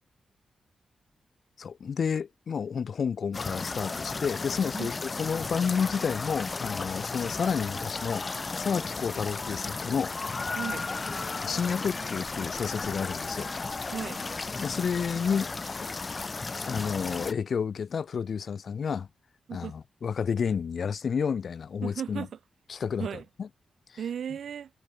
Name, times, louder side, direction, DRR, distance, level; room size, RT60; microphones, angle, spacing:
voice 1, 1.6-8.3 8.6-10.1 11.4-13.5 14.6-15.5 15.8-15.9 16.7-19.1 19.5-22.3 22.7-23.1 23.4-23.5 23.9-24.0, left 6 dB, 65° left, 1.0 m, -30 dB
sound 1, 3.3-17.3, left 3 dB, 40° left, 1.2 m, -34 dB
voice 2, 10.6-10.9 13.9-14.2 19.5-19.8 21.8-22.3 23.0-23.2 24.0-24.7, right 8 dB, 75° right, 5.4 m, -35 dB
cardioid pair, 65°, 0 cm